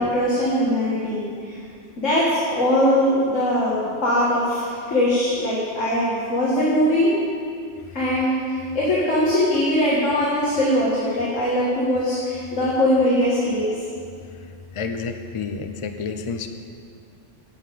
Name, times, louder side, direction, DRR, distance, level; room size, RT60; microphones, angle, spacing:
voice 1, 0.0-1.6 2.0-7.1 7.9-13.7, left 1 dB, 80° left, -7 dB, 2.3 m, -21 dB
voice 2, 14.7-16.5, left 5 dB, 35° left, 7 dB, 0.6 m, -30 dB
9.9 x 7.2 x 8.5 m, 2.3 s
omnidirectional pair, 1.3 m